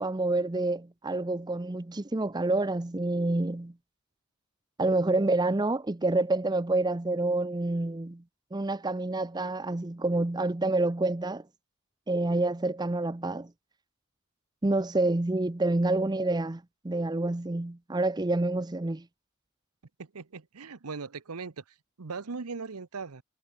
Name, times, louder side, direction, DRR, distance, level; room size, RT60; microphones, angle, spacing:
voice 1, 0.0-3.7 4.8-8.2 8.5-11.4 12.1-13.5 14.6-19.0, right 2 dB, 20° right, 0.6 m, -28 dB
voice 2, 20.0-21.6 22.0-23.2, right 4 dB, 85° right, 0.9 m, -39 dB
head